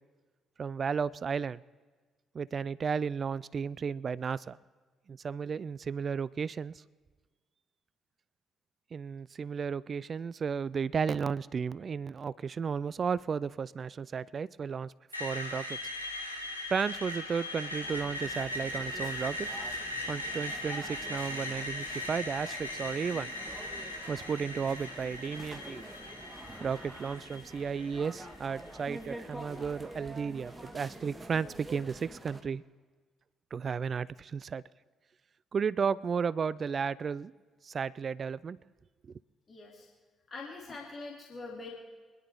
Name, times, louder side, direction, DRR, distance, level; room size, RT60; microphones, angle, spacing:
voice 1, 0.6-1.6 2.3-4.6 5.1-6.8 8.9-14.9 15.2-15.8 16.7-19.5 20.1-23.3 24.1-25.8 26.6-32.6 33.5-34.6 35.5-37.3 37.6-38.6 39.1-39.2, right 6 dB, 40° right, 21 dB, 0.3 m, -33 dB
Screech, 15.1-29.1, left 1 dB, 90° left, 1.0 m, -39 dB
sound 1, 17.8-32.4, right 1 dB, 15° right, 1.4 m, -47 dB
voice 2, 39.5-39.9 40.3-41.7, left 3 dB, 40° left, -2 dB, 2.7 m, -43 dB
25.5 x 11.0 x 3.6 m, 1.4 s
figure-of-eight pair, 40°, 0 cm